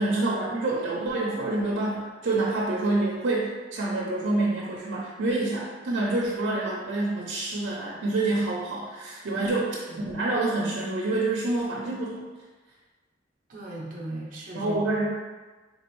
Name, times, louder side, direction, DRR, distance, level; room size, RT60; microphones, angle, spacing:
voice 1, 0.0-12.2 14.5-15.1, right 2 dB, 85° right, -4 dB, 0.6 m, -27 dB
voice 2, 13.5-15.0, right 1 dB, 45° right, -4 dB, 0.7 m, -38 dB
3.8 x 3.0 x 3.0 m, 1.3 s
head